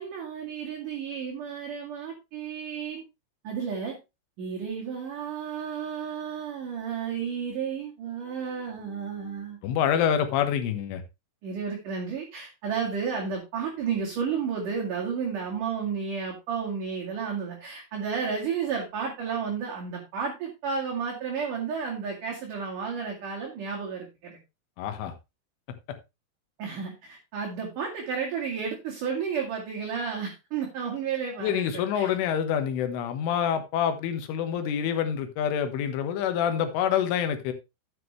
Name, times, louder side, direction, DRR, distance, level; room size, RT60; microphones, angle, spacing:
voice 1, 0.0-3.0 3.4-4.0 4.4-9.6 11.4-24.4 26.6-32.2, right 6 dB, 50° right, 3.1 m, -32 dB
voice 2, 9.6-11.0 24.8-25.1 31.4-37.5, left 9 dB, 75° left, 3.7 m, -26 dB
12.0 x 8.0 x 3.3 m
omnidirectional pair, 5.8 m